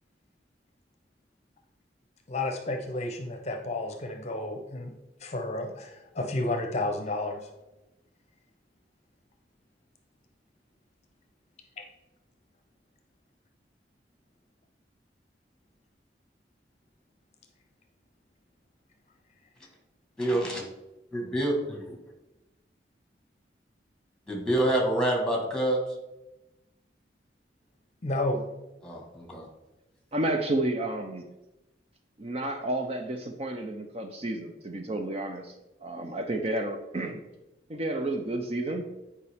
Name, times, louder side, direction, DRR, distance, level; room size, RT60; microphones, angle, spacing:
voice 1, 2.3-7.5 11.8-11.9 28.0-28.4, left 2 dB, 40° left, 5 dB, 0.7 m, -31 dB
voice 2, 20.2-20.6 21.1-22.0 24.3-25.8 28.8-29.5, right 1 dB, 5° left, 0 dB, 1.5 m, -27 dB
voice 3, 30.1-31.3 32.2-35.5 35.8-37.2 37.7-38.8, right 1 dB, 35° right, 5 dB, 0.5 m, -31 dB
9.5 x 4.8 x 3.5 m, 0.99 s
head